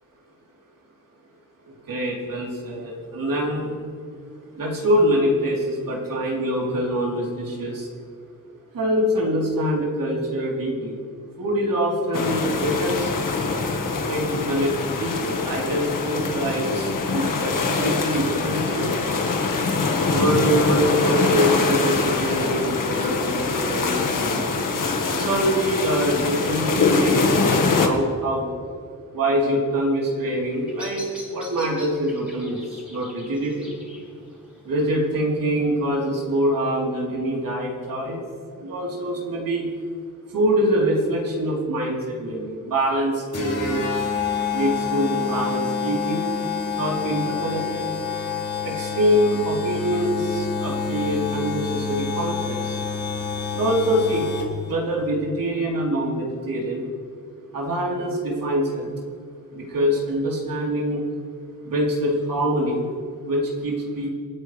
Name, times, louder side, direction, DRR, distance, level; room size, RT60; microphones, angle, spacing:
voice 1, 1.9-3.7 4.6-7.9 8.7-11.0 11.4-13.1 14.1-14.7 15.0-18.8 20.1-24.5 25.1-28.5 29.1-31.0 31.3-32.6 32.9-33.7 34.6-38.2 38.6-39.7 40.3-43.9 44.5-46.3 46.8-47.9 48.6-52.8 53.5-54.3 54.7-56.9 57.5-58.9 59.5-61.0 61.6-62.8 63.2-64.1, equal, 75° right, -3 dB, 4.0 m, -24 dB
sound 1, 12.1-27.9, left 4 dB, 70° left, 1.8 m, -23 dB
Bird vocalization bird call bird song, 30.2-36.2, equal, 5° right, 4.2 m, -45 dB
sound 2, 43.3-54.7, left 5 dB, 45° left, 3.4 m, -28 dB
27.5 x 9.5 x 3.5 m, 2.3 s
wide cardioid pair, 115°, 33 cm